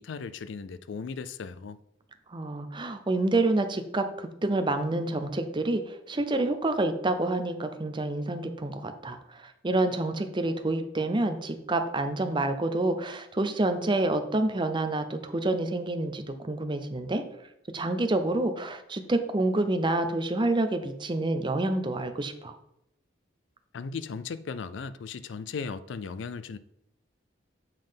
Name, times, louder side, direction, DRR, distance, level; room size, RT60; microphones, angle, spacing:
voice 1, 0.0-1.8 23.7-26.6, left 5 dB, 65° left, 0.4 m, -37 dB
voice 2, 2.3-17.2 17.7-22.5, right 2 dB, 25° right, 0.6 m, -28 dB
7.4 x 3.8 x 5.1 m
head